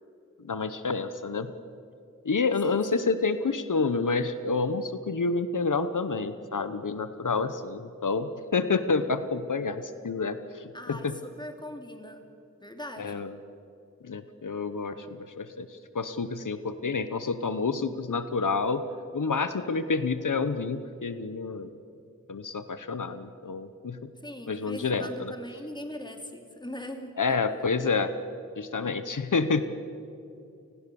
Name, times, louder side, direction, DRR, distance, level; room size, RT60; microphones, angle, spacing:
voice 1, 0.4-1.5 2.2-10.7 11.0-11.1 13.0-13.3 14.0-15.7 15.9-18.8 19.1-21.7 22.3-24.1 24.5-25.3 27.2-28.1 28.6-29.6, left 4 dB, 80° left, 11 dB, 1.0 m, -28 dB
voice 2, 2.6-3.1 10.7-12.2 12.6-13.3 24.2-27.4, left 1 dB, 15° left, 5 dB, 2.9 m, -41 dB
30.0 x 19.5 x 7.0 m, 2.6 s
wide cardioid pair, 60°, 31 cm